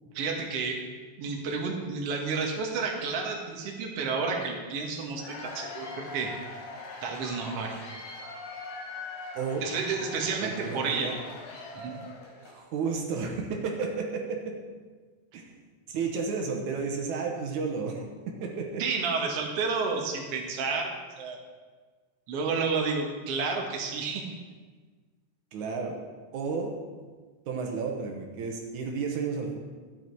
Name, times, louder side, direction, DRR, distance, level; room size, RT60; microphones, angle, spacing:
voice 1, 0.1-0.8 1.2-6.3 7.0-7.7 9.6-11.1 11.7-12.0 18.8-21.4 22.3-24.2, right 4 dB, 60° right, 0 dB, 2.3 m, -31 dB
Cheering / Applause / Crowd, 5.0-12.6, left 3 dB, 75° left, 3.4 m, -42 dB
voice 2, 9.3-9.6 10.4-11.1 12.4-14.4 15.3-15.4 15.9-18.0 18.4-18.8 25.5-26.0 26.3-26.7 27.5-29.6, right 5 dB, 80° right, 1 dB, 2.6 m, -32 dB
12.5 x 8.6 x 4.6 m, 1.4 s
omnidirectional pair, 3.4 m